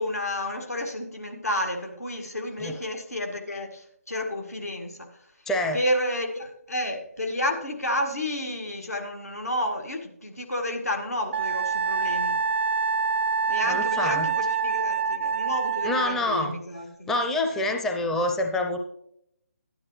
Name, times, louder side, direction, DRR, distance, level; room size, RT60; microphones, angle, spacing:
voice 1, 0.0-5.1 5.7-12.4 13.5-17.1 17.5-17.7, left 1 dB, 90° left, 3 dB, 1.9 m, -31 dB
voice 2, 5.5-5.8 13.7-14.3 15.8-16.6 17.1-18.8, left 1 dB, 5° left, 3 dB, 0.5 m, -26 dB
Wind instrument woodwind instrument, 11.3-16.2, right 5 dB, 50° right, 0.4 m, -26 dB
12.0 x 10.0 x 3.2 m, 0.74 s
figure-of-eight pair, 150°, 8 cm